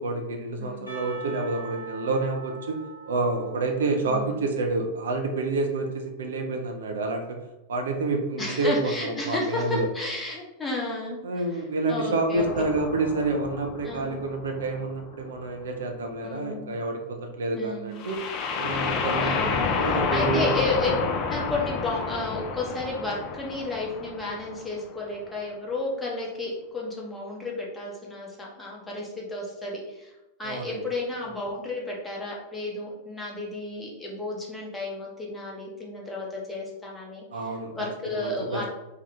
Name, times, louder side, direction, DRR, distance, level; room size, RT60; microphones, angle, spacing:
voice 1, 0.0-2.8 3.1-7.4 7.7-9.9 11.2-18.2 18.6-20.6 30.4-30.8 37.3-37.7 38.1-38.7, right 3 dB, 65° right, 3 dB, 0.4 m, -28 dB
Percussion, 0.9-4.8, right 3 dB, 90° right, 0.9 m, -43 dB
voice 2, 4.0-4.4 8.4-11.2 11.5-11.6 11.9-12.5 13.8-14.2 16.2-16.7 17.5-18.0 19.2-20.9 21.3-38.7, left 2 dB, 10° left, -3 dB, 0.9 m, -32 dB
sound 1, 12.4-15.2 18.0-24.8, left 5 dB, 40° left, 0.4 m, -30 dB
2.7 x 2.3 x 3.5 m, 1.0 s
figure-of-eight pair, 90°, 0 cm